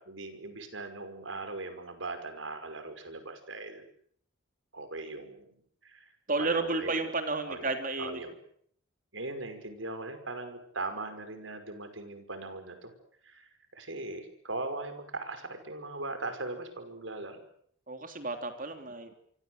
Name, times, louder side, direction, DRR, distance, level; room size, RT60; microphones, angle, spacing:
voice 1, 0.0-3.9 4.7-5.6 5.8-6.1 6.4-7.1 7.5-7.7 8.0-8.3 9.1-12.9 13.2-17.4, right 2 dB, 80° right, 9 dB, 5.6 m, -39 dB
voice 2, 6.3-8.2 17.9-19.1, right 3 dB, 45° right, 6 dB, 3.3 m, -32 dB
28.0 x 24.5 x 8.0 m, 0.67 s
head